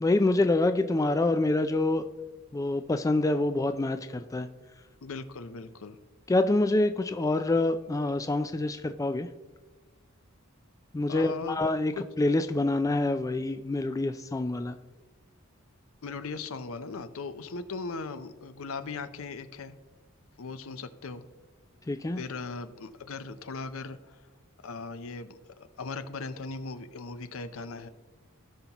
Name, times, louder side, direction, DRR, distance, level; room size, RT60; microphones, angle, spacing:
voice 1, 0.0-2.1 2.5-4.5 6.3-9.3 10.9-11.9 12.2-14.8 21.9-22.2, left 2 dB, 15° left, 9 dB, 0.3 m, -26 dB
voice 2, 5.0-6.0 11.1-11.6 11.9-12.0 16.0-19.8 20.4-21.2 22.2-24.2 24.6-25.4 25.8-27.9, left 4 dB, 75° left, 11 dB, 0.6 m, -38 dB
17.0 x 5.6 x 2.9 m, 1.2 s
head